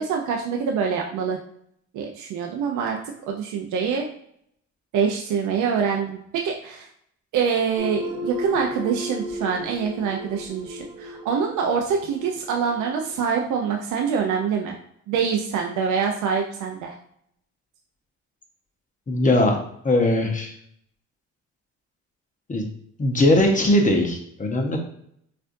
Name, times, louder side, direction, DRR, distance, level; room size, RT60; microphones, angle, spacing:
voice 1, 0.0-1.4 1.9-3.0 3.3-4.1 4.9-6.9 7.3-14.8 15.1-17.0, right 6 dB, 80° right, 1 dB, 0.6 m, -25 dB
sound 1, 7.8-13.2, equal, 60° right, 1.1 m, -34 dB
voice 2, 19.1-19.6 19.8-20.5 22.5-22.6 23.0-24.8, left 1 dB, 25° left, 2 dB, 0.8 m, -20 dB
4.3 x 2.5 x 2.6 m, 0.69 s
cardioid pair, 90°, 30 cm